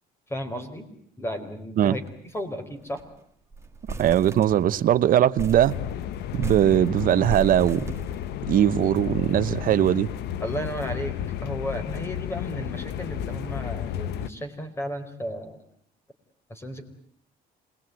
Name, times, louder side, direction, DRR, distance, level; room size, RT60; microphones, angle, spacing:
voice 1, 0.3-0.9 1.2-2.0 2.3-3.0 10.4-11.2 11.4-15.6 16.5-16.8, equal, 15° left, 4.6 m, -33 dB
sound 1, 1.9-2.1 2.4-2.5 2.8-3.2 3.5-4.9 5.4-8.7, right 4 dB, 15° right, 2.2 m, -36 dB
voice 2, 4.0-5.7 6.3-7.9 8.5-10.1, right 11 dB, 55° right, 1.0 m, -20 dB
sound 2, 5.7-14.3, left 10 dB, 80° left, 1.1 m, -32 dB
27.0 x 20.5 x 9.2 m
cardioid pair, 110°, 17 cm